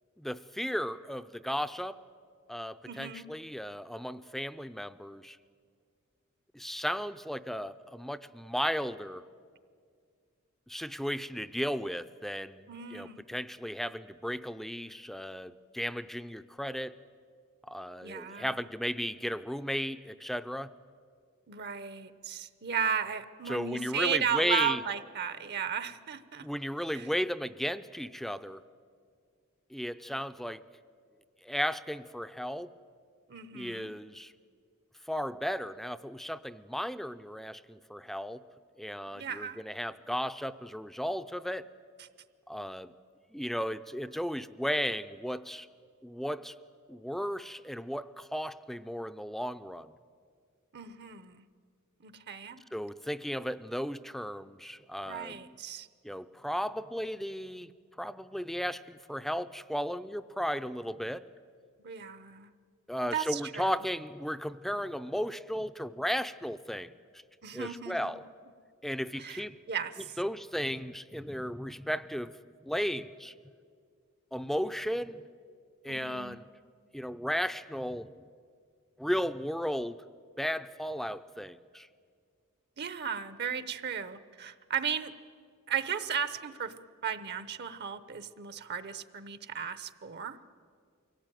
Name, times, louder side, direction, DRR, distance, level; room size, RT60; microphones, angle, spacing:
voice 1, 0.2-2.0 2.5-5.4 6.5-9.2 10.7-17.0 17.7-20.7 23.5-24.8 26.4-28.6 29.7-30.6 31.4-32.7 33.5-34.3 35.1-38.4 38.8-41.6 42.5-42.9 43.3-45.7 46.0-46.6 46.9-49.9 52.7-55.5 56.0-57.7 58.0-61.2 62.9-67.2 67.5-68.2 68.8-69.6 70.2-72.4 72.6-73.3 74.3-75.2 75.8-76.4 76.9-78.3 79.0-80.0 80.4-81.9, equal, ahead, 13 dB, 0.5 m, -35 dB
voice 2, 2.9-3.2 12.7-13.2 18.0-18.7 21.5-26.5 26.9-27.1 33.3-33.9 39.1-39.6 50.7-51.5 52.0-52.6 55.1-55.9 61.8-62.5 63.1-63.8 67.4-68.1 69.2-70.2 75.9-76.4 82.8-85.1 85.7-90.4, right 7 dB, 50° right, 13 dB, 0.8 m, -35 dB
24.0 x 17.0 x 9.1 m, 2.1 s
head